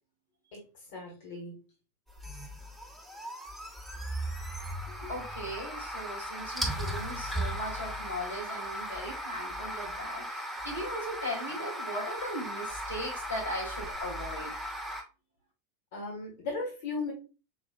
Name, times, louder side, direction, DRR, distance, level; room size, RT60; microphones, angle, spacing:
voice 1, 0.9-1.5 15.9-17.1, left 3 dB, 55° left, -1 dB, 1.6 m, -36 dB
sound 1, 2.1-15.0, equal, ahead, 1.1 m, -37 dB
voice 2, 4.9-14.5, equal, 90° left, -6 dB, 2.0 m, -38 dB
5.2 x 2.9 x 2.3 m, 0.32 s
figure-of-eight pair, 85°, 0 cm